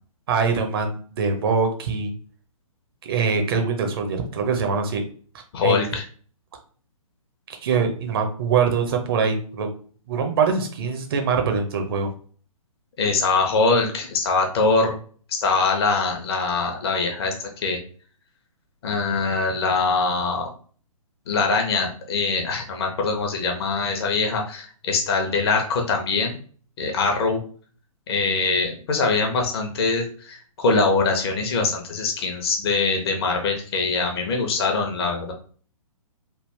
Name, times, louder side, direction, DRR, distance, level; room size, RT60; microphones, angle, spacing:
voice 1, 0.3-2.1 3.0-5.0 5.6-5.8 7.6-9.7 10.1-12.1, right 5 dB, 40° right, 4 dB, 0.7 m, -23 dB
voice 2, 5.5-6.0 13.0-15.0 15.3-17.8 18.8-20.5 21.3-26.4 26.8-27.4 28.1-35.3, left 4 dB, 45° left, 2 dB, 0.9 m, -23 dB
3.4 x 2.3 x 3.3 m, 0.43 s
figure-of-eight pair, 125°, 18 cm